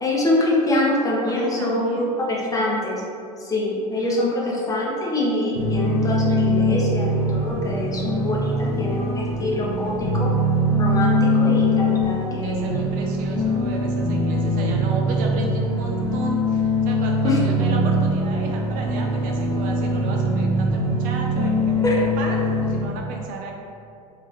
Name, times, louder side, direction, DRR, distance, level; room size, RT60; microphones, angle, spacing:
voice 1, 0.0-3.0 3.4-10.3 10.8-12.8 17.2-17.4 21.8-21.9, left 1 dB, 15° left, -4 dB, 0.9 m, -24 dB
voice 2, 1.3-2.2 3.9-4.2 4.6-4.8 12.2-23.5, right 3 dB, 45° right, 0 dB, 0.5 m, -34 dB
sound 1, 5.5-22.8, equal, 65° right, 1.2 m, -22 dB
4.5 x 2.9 x 3.2 m, 2.5 s
figure-of-eight pair, 80°, 20 cm